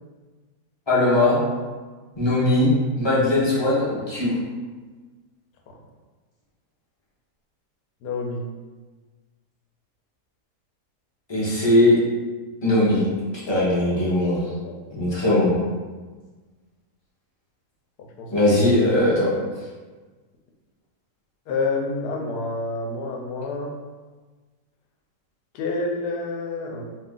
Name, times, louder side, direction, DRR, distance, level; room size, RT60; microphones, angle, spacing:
voice 1, 0.9-1.4 2.2-4.4 11.3-12.0 12.6-13.0 13.5-14.5 14.9-15.5 18.3-19.3, left 1 dB, 30° left, -8 dB, 0.5 m, -19 dB
voice 2, 8.0-8.4 13.5-14.1 14.6-14.8 18.0-18.3 21.5-23.8 25.5-26.8, left 3 dB, 80° left, 0 dB, 1.1 m, -29 dB
2.8 x 2.4 x 3.6 m, 1.3 s
omnidirectional pair, 1.7 m